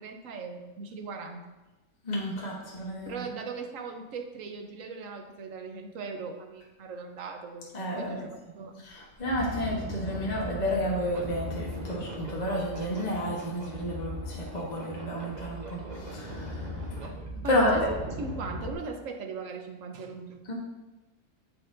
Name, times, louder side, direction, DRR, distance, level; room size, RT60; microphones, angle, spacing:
voice 1, 0.0-1.6 3.1-8.9 17.4-20.5, right 4 dB, 65° right, 4 dB, 1.2 m, -39 dB
voice 2, 2.0-3.2 7.7-8.3 8.8-17.0 17.5-17.9 20.5-20.6, equal, 30° left, -4 dB, 1.2 m, -31 dB
sound 1, 8.9-18.7, equal, 35° right, 0.9 m, -39 dB
12.5 x 4.5 x 2.6 m, 1.1 s
omnidirectional pair, 1.6 m